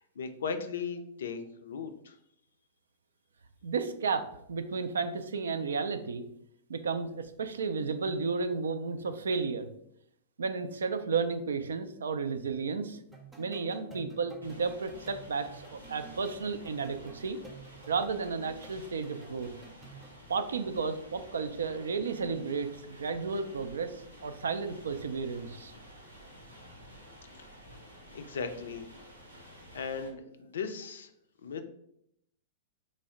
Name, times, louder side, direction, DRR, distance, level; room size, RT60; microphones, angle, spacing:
voice 1, 0.0-2.2 28.1-28.9 29.7-31.1 31.4-31.6, left 5 dB, 70° left, 8 dB, 0.4 m, -37 dB
voice 2, 3.6-6.2 6.7-9.7 10.4-13.0 13.4-17.4 17.9-19.5 20.3-25.7, right 5 dB, 75° right, 9 dB, 0.3 m, -33 dB
sound 1, 13.1-20.1, right 3 dB, 5° right, 0.6 m, -52 dB
sound 2, 14.4-30.1, equal, 90° right, 0.8 m, -52 dB
3.3 x 2.0 x 3.7 m, 0.73 s
figure-of-eight pair, 100°, 0 cm